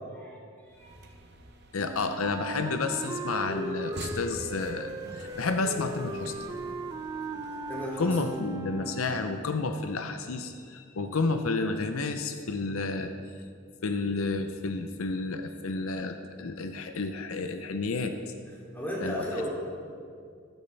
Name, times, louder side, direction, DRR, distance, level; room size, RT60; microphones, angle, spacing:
sound 1, 0.7-8.5, right 1 dB, 50° right, 0.9 m, -47 dB
voice 1, 1.7-6.4 8.0-13.1 13.8-18.1 19.0-19.3, left 3 dB, 80° left, 7 dB, 0.6 m, -31 dB
Wind instrument woodwind instrument, 1.8-9.5, right 2 dB, 20° right, 0.5 m, -38 dB
voice 2, 7.7-8.2 18.5-19.5, equal, 10° left, -6 dB, 2.9 m, -35 dB
14.0 x 12.5 x 3.4 m, 2.3 s
head